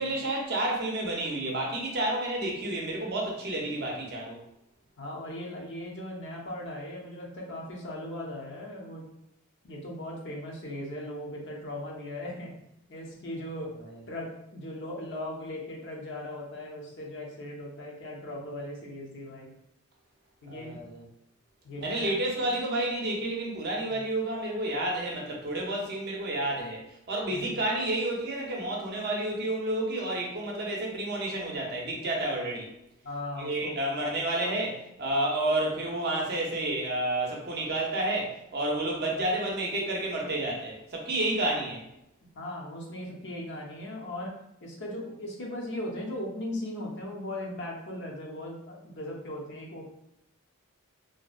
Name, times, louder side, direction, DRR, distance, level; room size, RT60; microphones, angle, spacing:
voice 1, 0.0-4.4 20.5-21.0 21.8-32.7 33.4-34.7 35.0-41.8, right 1 dB, 50° right, -1 dB, 0.6 m, -30 dB
voice 2, 5.0-9.1 9.6-12.5 12.9-13.8 14.1-19.5 20.4-20.8 21.6-22.1 22.4-22.5 27.3-27.6 33.0-33.8 34.4-34.6 42.2-44.4 44.6-49.9, left 1 dB, 55° left, -1 dB, 0.5 m, -38 dB
2.6 x 2.1 x 2.4 m, 0.84 s
head